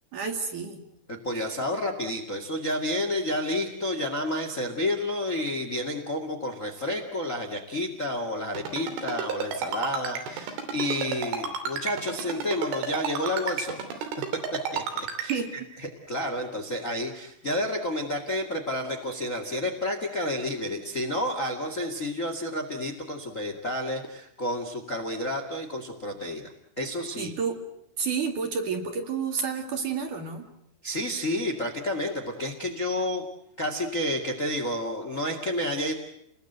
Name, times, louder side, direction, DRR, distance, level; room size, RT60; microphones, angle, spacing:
voice 1, 0.1-0.8 1.4-1.5 15.3-15.7 27.2-27.6 28.0-30.4, right 6 dB, 50° right, 4 dB, 3.0 m, -30 dB
voice 2, 1.1-14.1 14.5-15.3 16.1-26.5 26.8-27.3 30.8-33.2 33.6-35.9, left 1 dB, 75° left, 4 dB, 0.7 m, -30 dB
Ringtone, 8.6-15.4, right 5 dB, 75° right, 5.3 m, -32 dB
29.5 x 20.5 x 8.0 m, 0.77 s
omnidirectional pair, 5.6 m